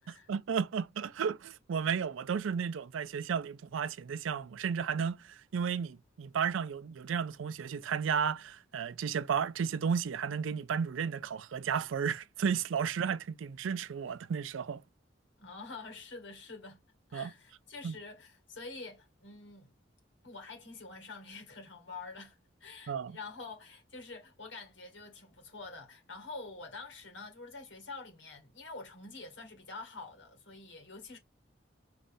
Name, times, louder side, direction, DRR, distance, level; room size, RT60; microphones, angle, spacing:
voice 1, 0.1-14.8 17.1-17.3 17.8-17.9 22.9-23.2, right 7 dB, 90° right, 0.4 m, -33 dB
voice 2, 15.4-16.8 17.1-19.7 20.2-31.2, left 3 dB, 75° left, 1.9 m, -47 dB
5.2 x 3.2 x 2.6 m
head